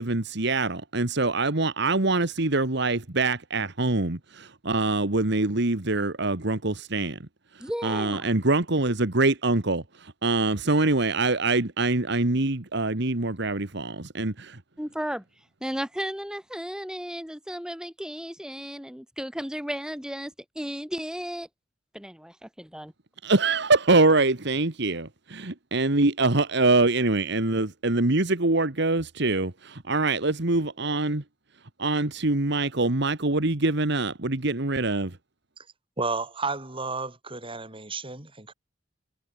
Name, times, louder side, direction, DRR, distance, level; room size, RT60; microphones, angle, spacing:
voice 1, 0.0-7.2 7.8-14.6 23.2-31.2 31.8-35.2, right 2 dB, 60° right, 1.8 m, -24 dB
voice 2, 7.6-8.3 14.8-15.2 15.6-21.5 21.9-22.9, equal, 5° right, 6.4 m, -34 dB
voice 3, 36.0-38.5, right 3 dB, 30° right, 7.6 m, -32 dB
head